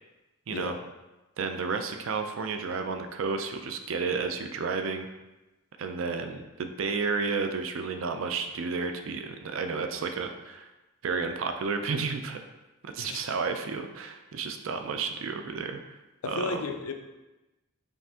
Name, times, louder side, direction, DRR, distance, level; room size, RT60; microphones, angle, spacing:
voice 1, 0.5-0.8 1.4-5.1 5.8-10.7 11.0-12.4 12.8-15.8 16.2-16.7, right 4 dB, 65° right, 6 dB, 0.4 m, -32 dB
voice 2, 16.2-16.9, left 4 dB, 80° left, 5 dB, 0.5 m, -33 dB
5.2 x 2.5 x 3.4 m, 1.1 s
head